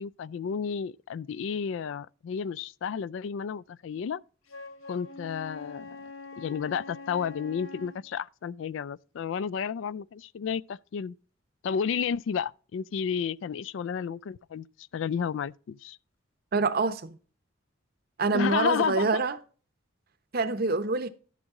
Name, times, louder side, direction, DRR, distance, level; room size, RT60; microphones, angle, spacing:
voice 1, 0.0-4.2 4.9-6.0 6.4-11.2 11.6-14.7 14.9-16.0 18.3-19.2, left 7 dB, 65° left, 0.3 m, -32 dB
Wind instrument woodwind instrument, 4.5-8.0, left 3 dB, 90° left, 1.4 m, -44 dB
voice 2, 16.5-17.1 18.2-19.4 20.3-21.1, right 3 dB, 50° right, 0.8 m, -26 dB
11.5 x 6.4 x 3.6 m
head